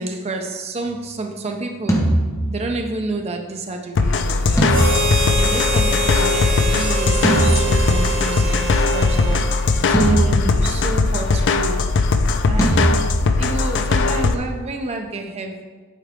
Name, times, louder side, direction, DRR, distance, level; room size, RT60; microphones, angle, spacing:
voice 1, 0.0-2.0 2.5-4.8 5.4-9.5 9.9-11.8 12.5-12.9 13.4-15.6, right 2 dB, 30° right, 4 dB, 0.4 m, -29 dB
sound 1, 1.9-3.1 4.6-6.1 7.2-8.4 9.9-11.2 12.6-13.7, right 1 dB, 15° left, 0.9 m, -21 dB
sound 2, 3.9-14.3, left 3 dB, 55° left, 0.4 m, -19 dB
Harmonica, 4.7-10.2, equal, 55° right, 1.2 m, -25 dB
8.3 x 4.5 x 3.6 m, 1.4 s
head